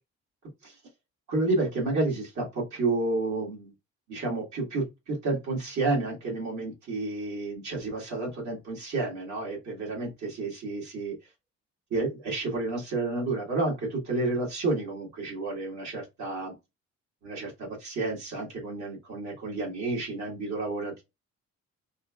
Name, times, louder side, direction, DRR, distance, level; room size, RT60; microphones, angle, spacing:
voice 1, 1.3-3.7 4.1-11.1 11.9-16.5 17.2-21.0, right 2 dB, 65° right, 1.8 m, -30 dB
3.7 x 2.3 x 2.3 m
cardioid pair, 90°, 30 cm